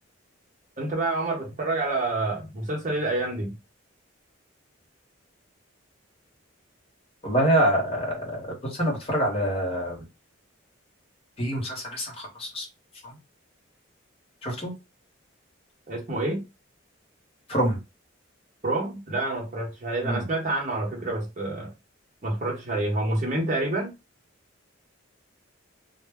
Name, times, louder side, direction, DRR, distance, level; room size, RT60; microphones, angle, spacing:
voice 1, 0.8-3.5 15.9-16.4 18.6-21.7 22.2-23.9, right 2 dB, 40° right, 0.8 m, -28 dB
voice 2, 7.2-10.0 11.4-12.6 13.0-13.2 14.4-14.7 17.5-17.8 20.0-20.2, right 1 dB, 30° left, 1.0 m, -26 dB
2.1 x 2.1 x 3.4 m
head